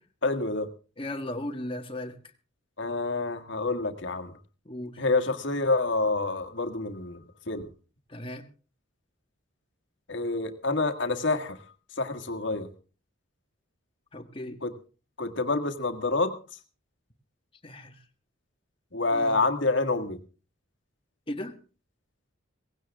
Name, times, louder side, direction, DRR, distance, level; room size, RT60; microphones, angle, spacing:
voice 1, 0.2-0.7 2.8-4.3 5.0-7.7 10.1-11.6 12.0-12.7 14.6-14.7 15.2-16.3 18.9-20.2, left 3 dB, 60° left, 1.8 m, -27 dB
voice 2, 1.0-2.2 4.6-5.0 8.1-8.5 14.1-14.6 17.6-18.0 19.1-19.4 21.3-21.6, left 1 dB, 25° left, 1.6 m, -36 dB
18.0 x 16.5 x 3.5 m
head